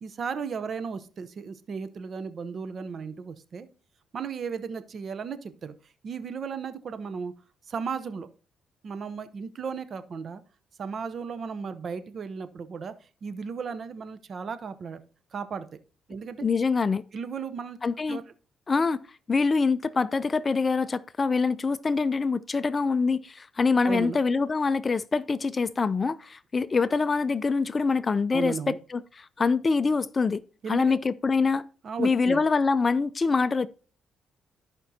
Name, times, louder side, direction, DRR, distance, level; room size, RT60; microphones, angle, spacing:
voice 1, 0.0-3.7 4.1-5.7 6.0-7.3 7.7-8.3 8.8-10.4 10.8-15.0 15.3-15.7 16.1-16.4 17.1-17.8 18.1-18.2 23.8-24.2 28.3-28.8 30.6-31.0 31.8-32.4, right 5 dB, 50° right, 0.7 m, -35 dB
voice 2, 16.4-17.0 17.8-18.2 18.7-19.0 19.3-29.0 29.4-30.4 30.7-31.7 32.0-33.7, left 4 dB, 35° left, 0.4 m, -25 dB
13.5 x 5.3 x 2.8 m
cardioid pair, 90°, 0 cm